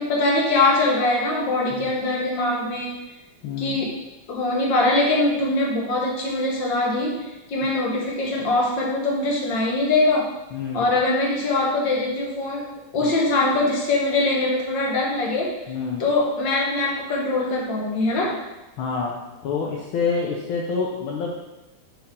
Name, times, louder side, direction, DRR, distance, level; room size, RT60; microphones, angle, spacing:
voice 1, 0.0-3.0 3.6-3.9 4.3-10.3 10.7-12.6 12.9-15.5 16.0-18.4, left 2 dB, 60° left, -3 dB, 2.1 m, -22 dB
voice 2, 3.4-3.8 10.5-10.8 13.0-13.1 15.7-16.0 18.8-19.1 19.4-21.3, left 5 dB, 75° left, -2 dB, 1.6 m, -27 dB
6.3 x 6.0 x 3.7 m, 1.0 s
omnidirectional pair, 2.3 m